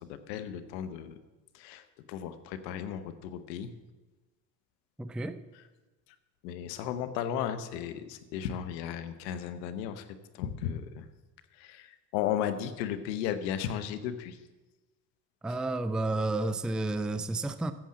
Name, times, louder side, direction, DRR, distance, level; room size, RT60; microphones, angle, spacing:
voice 1, 0.1-1.2 1.5-3.7 6.4-10.1 10.3-11.1 11.6-14.4, left 9 dB, 90° left, 11 dB, 0.9 m, -35 dB
voice 2, 5.0-5.4 15.4-17.7, right 2 dB, ahead, 11 dB, 0.5 m, -31 dB
8.9 x 7.1 x 7.4 m, 1.2 s
hypercardioid pair, 60°, 49 cm